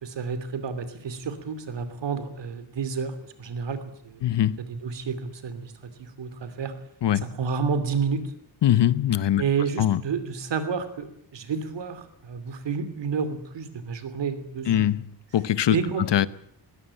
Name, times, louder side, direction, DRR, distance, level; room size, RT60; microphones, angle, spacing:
voice 1, 0.0-4.2 4.6-5.7 6.0-6.7 7.1-8.2 9.4-14.9 15.7-16.3, right 5 dB, 80° right, 2.9 m, -30 dB
voice 2, 4.2-4.6 7.0-7.2 8.6-9.4 9.8-10.0 14.7-15.0 15.3-15.8 16.1-16.3, left 11 dB, 75° left, 1.0 m, -21 dB
21.5 x 17.0 x 8.9 m
wide cardioid pair, 140°, 42 cm